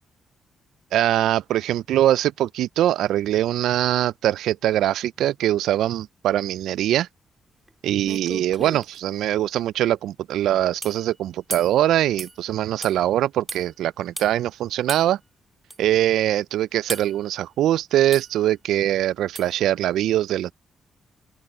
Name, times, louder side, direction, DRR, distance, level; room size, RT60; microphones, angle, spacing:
voice 1, 0.9-7.1 7.8-15.2 15.8-20.5, right 12 dB, 80° right, 0.4 m, -22 dB
sound 1, 7.7-7.8 8.0-9.0 10.8-11.0 11.5-11.8 12.2-12.4 12.8-13.0 13.5-13.6 14.2-14.3 14.9-15.1 15.7-15.8 16.9-17.2 18.1-18.4 19.3-19.6, right 2 dB, 20° right, 3.2 m, -34 dB
open air
supercardioid pair, 50°, 0 cm